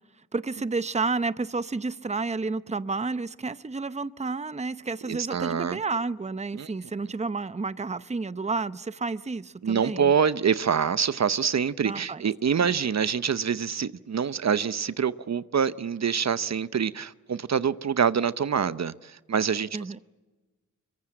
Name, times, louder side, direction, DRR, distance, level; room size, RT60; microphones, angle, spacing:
voice 1, 0.3-10.1 11.8-12.2 12.6-12.7 19.7-20.0, right 3 dB, 20° right, 0.7 m, -31 dB
voice 2, 5.1-5.8 6.6-6.7 9.6-18.9 19.3-19.7, right 7 dB, 60° right, 0.8 m, -25 dB
25.0 x 22.5 x 8.8 m
cardioid pair, 65°, 30 cm